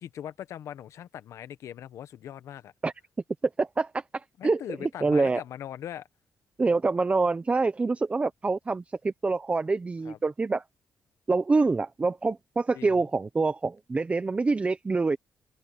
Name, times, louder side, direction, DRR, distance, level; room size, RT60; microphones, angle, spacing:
voice 1, 0.0-2.7 4.4-6.1 10.0-10.2 12.7-13.0, left 10 dB, 80° left, 1.2 m, -40 dB
voice 2, 3.6-5.4 6.6-10.6 11.3-15.2, right 3 dB, 25° right, 0.8 m, -26 dB
cardioid pair, 90°, 5 cm